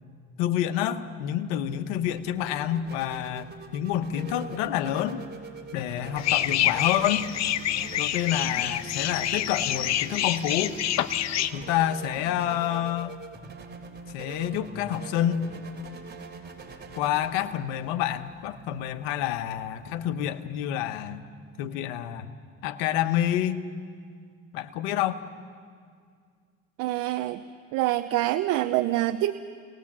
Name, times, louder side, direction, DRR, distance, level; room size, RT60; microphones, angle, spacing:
voice 1, 0.4-5.2 5.7-7.3 8.0-10.8 11.5-13.2 14.1-15.5 16.9-21.2 21.6-22.3 22.6-23.6 24.5-25.2, left 11 dB, 90° left, 10 dB, 1.1 m, -28 dB
sound 1, 1.8-20.0, right 4 dB, 35° right, 3.6 m, -44 dB
sound 2, 6.2-11.5, left 12 dB, 65° left, 1.0 m, -27 dB
voice 2, 26.8-27.4 27.7-29.3, right 15 dB, 80° right, 9 dB, 0.8 m, -25 dB
29.5 x 19.5 x 7.4 m, 2.1 s
supercardioid pair, 70°, 29 cm